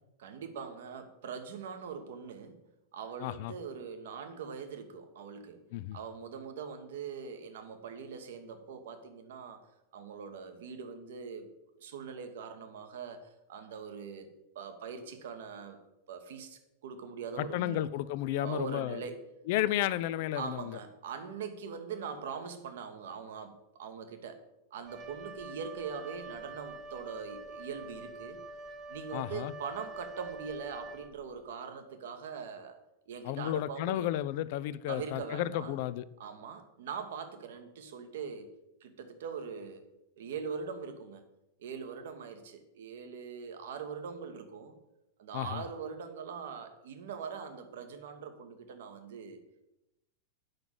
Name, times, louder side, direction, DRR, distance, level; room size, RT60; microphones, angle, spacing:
voice 1, 0.2-2.6 2.9-5.6 5.9-9.6 9.9-11.5 11.8-14.3 14.5-15.8 16.1-17.9 18.4-19.2 20.3-24.4 24.7-28.4 28.9-32.8 33.1-34.1 34.9-35.8 36.2-38.5 38.8-39.8 40.2-41.2 41.6-44.7 45.2-49.4, right 6 dB, 60° right, 8 dB, 1.1 m, -42 dB
voice 2, 3.2-3.5 5.7-6.0 17.4-19.0 19.5-20.8 29.1-29.5 33.2-36.1 45.3-45.6, left 13 dB, 50° left, 16 dB, 0.4 m, -32 dB
Wind instrument woodwind instrument, 24.9-31.4, right 2 dB, 30° right, 0.7 m, -46 dB
7.8 x 5.9 x 7.4 m, 0.92 s
figure-of-eight pair, 90°, 0 cm